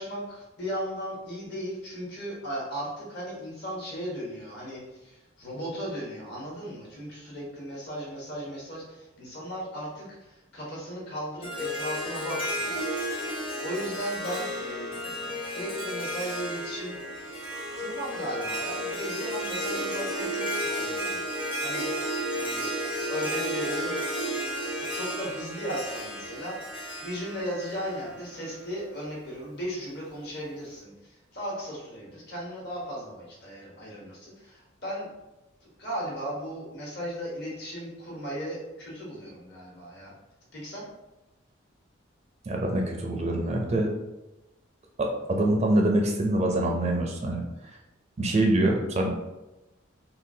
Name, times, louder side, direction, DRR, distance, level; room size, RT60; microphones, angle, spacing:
voice 1, 0.0-13.1 13.6-17.0 17.8-22.1 22.4-22.7 23.1-23.9 24.9-26.6 27.0-35.1 35.6-40.1 40.5-40.8, equal, 55° left, -5 dB, 1.2 m, -36 dB
Harp, 11.4-28.7, equal, 25° left, 0.7 m, -32 dB
voice 2, 42.5-43.9 45.0-47.4 48.2-49.2, right 1 dB, 35° right, 1 dB, 0.4 m, -25 dB
3.7 x 2.4 x 2.7 m, 1.0 s
head